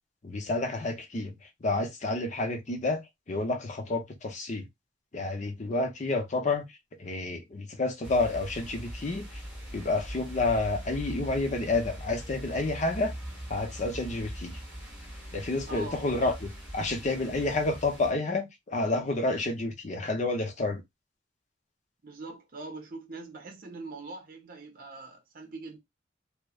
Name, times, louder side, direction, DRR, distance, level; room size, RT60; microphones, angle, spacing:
voice 1, 0.2-1.3 1.6-4.7 5.1-6.7 7.0-9.4 9.7-13.1 13.5-14.6 15.3-20.8, left 2 dB, 40° left, 0.6 m, -29 dB
sound 1, 8.0-18.1, equal, 5° right, 1.4 m, -41 dB
voice 2, 15.7-16.3 22.0-25.8, right 3 dB, 50° right, 0.7 m, -42 dB
3.0 x 2.1 x 2.3 m
head